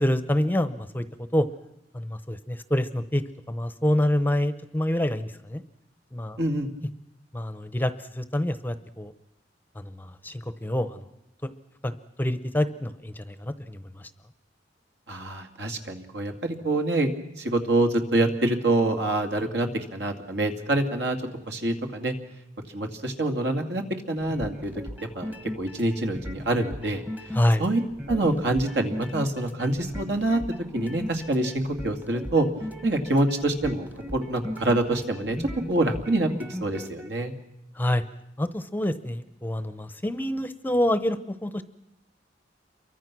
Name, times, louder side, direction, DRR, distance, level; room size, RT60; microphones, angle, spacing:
voice 1, 0.0-1.0 1.3-1.4 1.9-3.2 3.5-5.6 6.1-6.4 7.3-9.1 9.7-11.0 11.4-11.5 11.8-14.1 27.3-27.6 37.7-38.0 38.4-41.6, left 1 dB, 10° left, 12 dB, 0.8 m, -27 dB
voice 2, 6.4-6.7 15.1-17.1 17.4-21.2 21.5-22.1 22.7-24.7 25.1-27.0 27.6-27.8 28.1-30.4 30.7-32.5 32.8-35.4 35.7-37.3, right 2 dB, 65° right, 5 dB, 2.6 m, -26 dB
sound 1, 24.2-37.1, equal, 10° right, 1.2 m, -38 dB
28.5 x 23.5 x 6.2 m, 0.88 s
head